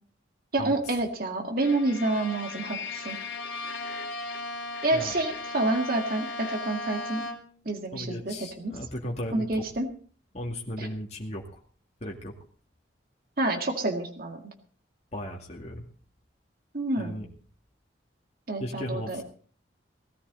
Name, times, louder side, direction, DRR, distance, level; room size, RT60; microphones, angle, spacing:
voice 1, 0.5-3.2 4.8-7.3 7.7-8.7 9.3-9.9 10.8-10.9 13.4-14.4 16.7-17.2 18.5-19.2, right 2 dB, 50° right, 4 dB, 2.0 m, -28 dB
Bowed string instrument, 1.6-7.7, left 3 dB, 70° left, 2.6 m, -37 dB
voice 2, 7.9-9.6 10.3-11.6 12.0-12.3 15.1-15.8 17.0-17.3 18.6-19.2, equal, 35° left, -1 dB, 2.3 m, -36 dB
18.5 x 13.5 x 4.0 m, 0.42 s
head